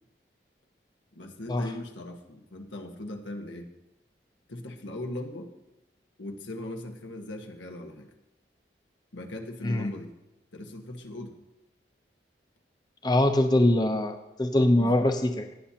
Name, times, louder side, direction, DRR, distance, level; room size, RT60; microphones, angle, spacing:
voice 1, 1.1-3.7 4.5-5.5 6.2-8.1 9.1-10.1 10.5-11.4 14.8-15.0, left 1 dB, 90° left, 4 dB, 1.4 m, -39 dB
voice 2, 13.0-14.1 14.4-15.5, left 1 dB, 20° left, 6 dB, 0.6 m, -23 dB
17.0 x 9.8 x 2.8 m, 0.93 s
head